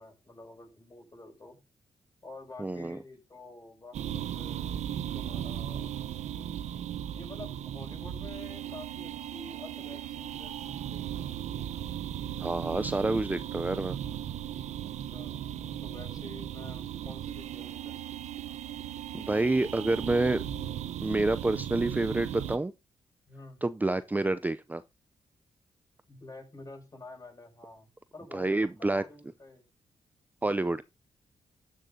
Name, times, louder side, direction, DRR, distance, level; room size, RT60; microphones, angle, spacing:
voice 1, 0.0-1.6 2.2-5.9 7.1-11.4 15.0-15.4 15.8-18.0 23.3-23.6 26.1-29.6, left 2 dB, 35° left, 6.4 m, -49 dB
voice 2, 2.6-3.0 12.4-14.0 19.1-20.4 21.0-22.7 23.6-24.8 28.3-29.0 30.4-30.8, right 2 dB, 15° right, 0.5 m, -28 dB
sound 1, 3.9-22.6, right 10 dB, 85° right, 0.8 m, -37 dB
13.5 x 10.0 x 2.7 m
cardioid pair, 70°, 11 cm